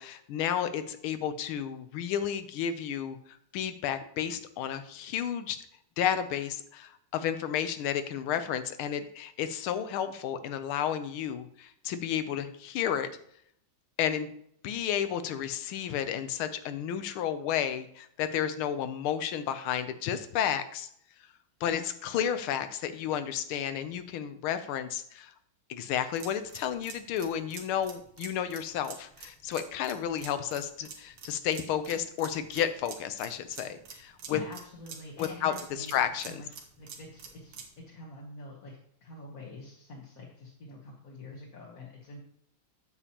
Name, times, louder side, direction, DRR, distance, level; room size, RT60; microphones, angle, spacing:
voice 1, 0.0-3.2 3.5-5.6 6.0-13.1 14.0-14.3 14.6-20.9 21.6-25.3 25.7-34.4 35.2-36.4, left 9 dB, 85° left, 11 dB, 1.6 m, -32 dB
sound 1, 26.0-37.8, right 6 dB, 80° right, 1.9 m, -47 dB
voice 2, 34.3-35.9 36.3-36.5 36.8-37.6 37.9-38.7 39.0-42.2, left 3 dB, 50° left, -3 dB, 1.5 m, -45 dB
8.4 x 7.0 x 2.9 m, 0.68 s
omnidirectional pair, 2.3 m